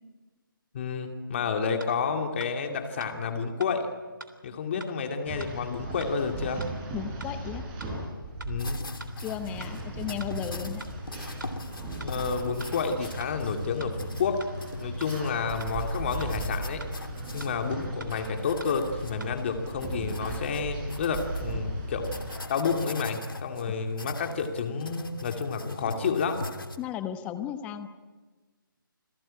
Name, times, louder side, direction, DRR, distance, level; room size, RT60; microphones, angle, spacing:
voice 1, 0.7-3.9 4.4-6.6 8.4-8.8 12.0-14.4 14.8-16.8 17.3-22.1 22.5-26.4, left 5 dB, 30° left, 5 dB, 2.4 m, -30 dB
sound 1, 1.8-1.9 2.4-2.5 3.0-3.1 3.6-3.7 4.2-4.3 4.8-4.9 5.4-5.5 6.0-6.1 6.6-6.7 7.2-7.3 7.8-7.9 8.4-8.5 9.0-9.1 9.6-9.7 10.2-10.3 10.8-10.9 11.4-11.5 12.0-12.1 12.6-12.7 13.2-13.3 13.8-13.9 14.4-14.5 15.0-15.1 15.6-15.7 16.2-16.3 16.8-16.9 17.4-17.5 18.0-18.1 18.6-18.7 19.2-19.3, right 3 dB, 60° right, 3.5 m, -43 dB
sound 2, 5.3-22.4, right 2 dB, 20° right, 6.5 m, -37 dB
voice 2, 6.9-7.6 9.2-10.8 26.8-27.9, left 10 dB, 10° left, 10 dB, 1.0 m, -35 dB
sound 3, 8.6-26.8, left 2 dB, 70° left, 2.9 m, -41 dB
28.5 x 20.0 x 8.9 m, 1.3 s
figure-of-eight pair, 150°, 12 cm